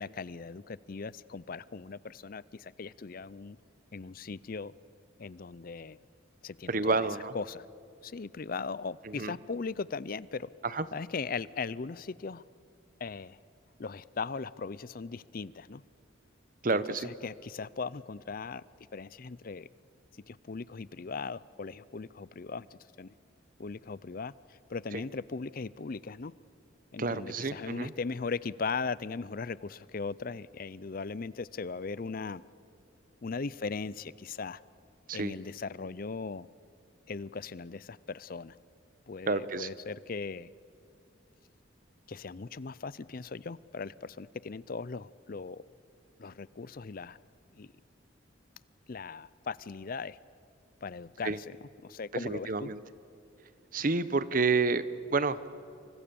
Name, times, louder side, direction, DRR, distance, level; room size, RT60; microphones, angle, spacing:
voice 1, 0.0-3.6 3.9-4.7 5.2-6.0 6.4-7.1 7.3-7.7 8.0-10.5 10.9-12.4 13.0-13.4 13.8-15.8 16.7-18.6 18.9-19.7 20.3-23.1 23.6-26.3 26.9-32.4 33.2-34.6 35.1-36.5 37.1-38.6 39.1-40.5 42.1-45.6 46.2-47.2 47.5-47.7 48.9-50.2 50.8-51.4 51.8-52.7, left 4 dB, 45° left, 19 dB, 0.5 m, -38 dB
voice 2, 6.7-7.3 9.0-9.4 10.6-10.9 16.6-17.1 24.9-25.0 27.0-27.9 35.1-35.3 39.3-39.7 51.2-51.4 52.1-52.8 53.7-55.5, right 3 dB, 45° right, 15 dB, 0.8 m, -29 dB
28.0 x 24.0 x 7.0 m, 2.6 s
head